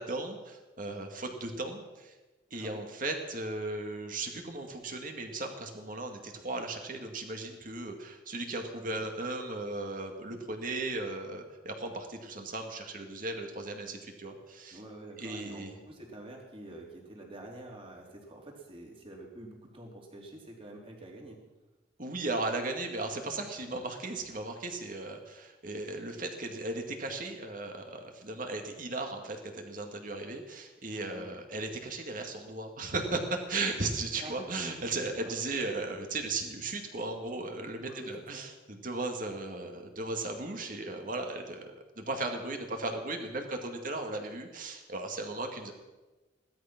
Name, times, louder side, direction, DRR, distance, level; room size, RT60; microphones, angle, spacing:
voice 1, 0.0-2.1 2.5-14.8 15.2-15.7 22.0-41.6 42.0-45.7, right 2 dB, 50° right, 4 dB, 2.1 m, -36 dB
voice 2, 2.5-2.8 8.7-9.0 14.7-21.4 30.9-31.3 34.2-34.5 35.2-35.3 37.8-38.4, right 1 dB, 30° right, -1 dB, 3.4 m, -47 dB
16.5 x 13.0 x 6.0 m, 1.2 s
head